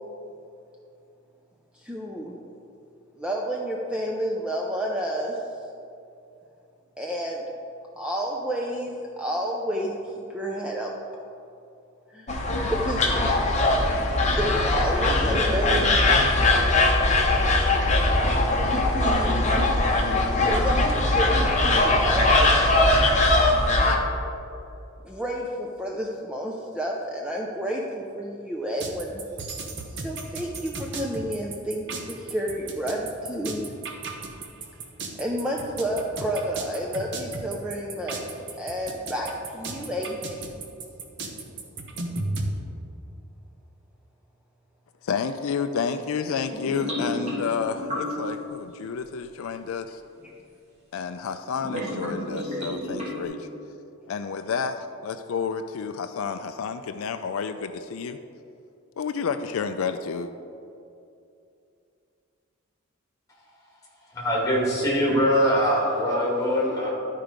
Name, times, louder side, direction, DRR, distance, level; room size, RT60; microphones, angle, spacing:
voice 1, 1.7-2.3 3.2-5.4 7.0-7.4 8.0-10.9 12.1-12.3 12.7-13.6 14.2-16.0 18.6-19.6 20.4-22.5 25.0-29.2 29.9-33.7 35.2-38.2 38.6-40.5, equal, 5° right, -2 dB, 0.5 m, -30 dB
sound 1, 12.3-24.0, left 2 dB, 30° left, 0.9 m, -21 dB
sound 2, 28.8-42.5, right 3 dB, 55° right, 0.9 m, -35 dB
voice 2, 45.0-50.0 50.9-53.5 54.1-58.2 59.0-60.3, left 6 dB, 70° left, 9 dB, 0.4 m, -30 dB
sound 3, 46.5-48.4 50.2-50.3 51.5-53.2, left 1 dB, 30° right, 1.9 m, -32 dB
voice 3, 64.1-66.9, equal, 15° left, -3 dB, 1.9 m, -22 dB
12.0 x 4.6 x 5.0 m, 2.6 s
head